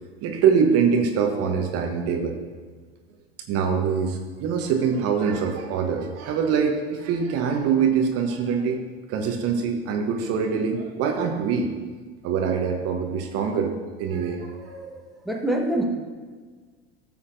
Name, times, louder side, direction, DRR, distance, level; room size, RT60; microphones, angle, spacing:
voice 1, 0.2-2.3 3.5-8.8 9.1-11.7 12.2-13.7 14.0-14.5, right 6 dB, 50° right, 3 dB, 1.1 m, -24 dB
voice 2, 14.5-15.8, right 1 dB, ahead, -1 dB, 1.3 m, -27 dB
13.5 x 7.1 x 2.7 m, 1.5 s
figure-of-eight pair, 70°, 32 cm